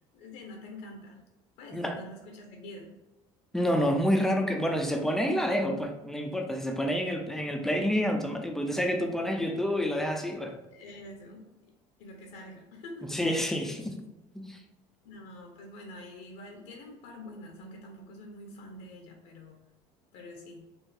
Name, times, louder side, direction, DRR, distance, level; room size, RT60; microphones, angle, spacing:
voice 1, 0.1-1.2 1.6-2.9 10.7-11.5 12.0-13.2 15.0-19.6 20.1-20.6, left 1 dB, 80° left, 0.8 m, -46 dB
voice 2, 3.5-10.6 13.1-13.9 14.3-14.6, equal, 5° left, 0.4 m, -28 dB
4.3 x 2.5 x 3.3 m
cardioid pair, 135°, 12 cm